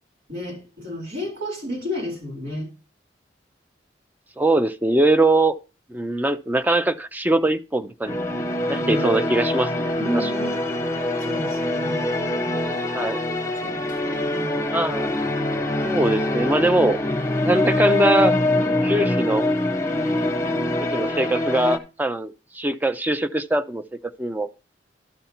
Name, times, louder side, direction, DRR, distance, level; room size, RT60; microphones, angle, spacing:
voice 1, 0.3-2.7 8.8-9.2 10.0-10.6 11.2-12.6 13.6-14.6 19.8-20.1, left 1 dB, 65° right, 4.1 m, -32 dB
voice 2, 4.4-5.5 5.9-8.2 8.7-10.3 12.9-13.2 14.7-15.1 15.8-17.0 17.4-18.4 18.8-19.5 20.8-23.8 24.2-24.5, right 1 dB, 10° right, 0.4 m, -22 dB
sound 1, 8.0-21.8, left 1 dB, 15° left, 0.9 m, -24 dB
12.0 x 6.7 x 2.9 m
head